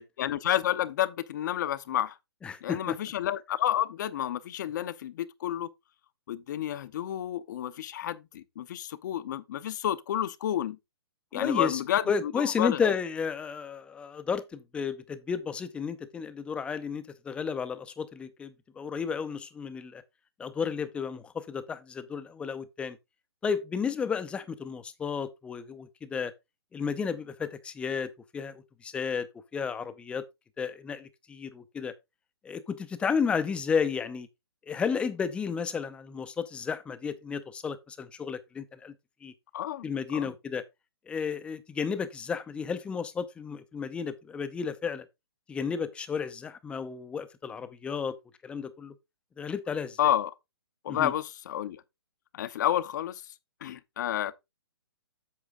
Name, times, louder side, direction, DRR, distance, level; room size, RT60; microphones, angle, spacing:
voice 1, 0.2-2.2 2.6-5.7 6.3-10.8 11.3-12.9 39.5-39.9 40.1-40.3 50.0-50.3 50.8-51.8 52.3-53.2 53.6-54.3, left 11 dB, 45° left, 0.8 m, -30 dB
voice 2, 2.4-3.0 11.3-11.8 12.1-20.0 20.4-23.0 23.4-26.3 26.7-30.2 30.6-31.9 32.4-34.3 34.7-38.9 39.2-39.3 39.8-40.7 41.1-45.1 45.5-48.1 48.4-48.9 49.4-50.0 50.9-51.1, left 6 dB, 10° left, 0.6 m, -32 dB
8.4 x 6.0 x 3.6 m
hypercardioid pair, 150°, 14 cm